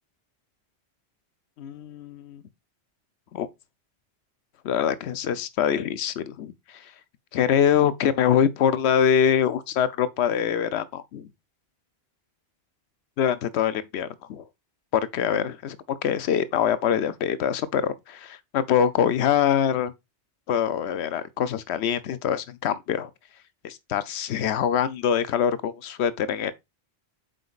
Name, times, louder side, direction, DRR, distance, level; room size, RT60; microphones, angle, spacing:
voice 1, 1.6-2.4 3.3-3.5 4.6-6.9 7.3-11.3 13.2-14.4 14.9-19.9 20.5-23.1 23.6-26.5, left 8 dB, 75° left, 0.9 m, -24 dB
7.8 x 5.1 x 2.4 m
omnidirectional pair, 1.1 m